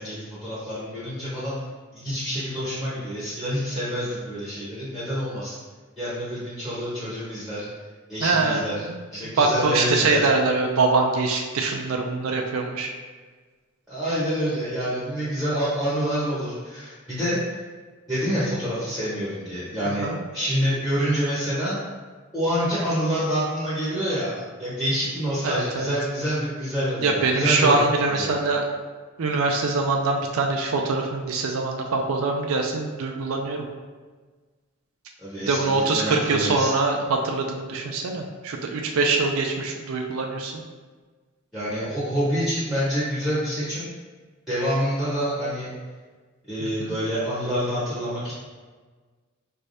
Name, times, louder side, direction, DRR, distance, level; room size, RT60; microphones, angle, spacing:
voice 1, 0.0-1.6 1.9-5.6 6.0-7.7 8.1-8.8 9.1-10.3 13.9-17.6 18.1-21.8 22.3-27.8 28.1-28.3 35.2-36.7 41.5-43.9 44.5-45.7 46.5-48.3, equal, ahead, -11 dB, 1.0 m, -27 dB
voice 2, 8.2-9.0 9.2-12.9 19.9-20.2 25.4-25.9 27.0-28.7 29.2-33.7 35.5-40.6 46.6-47.0, right 3 dB, 75° right, 2 dB, 0.4 m, -23 dB
4.5 x 3.3 x 2.6 m, 1.4 s
head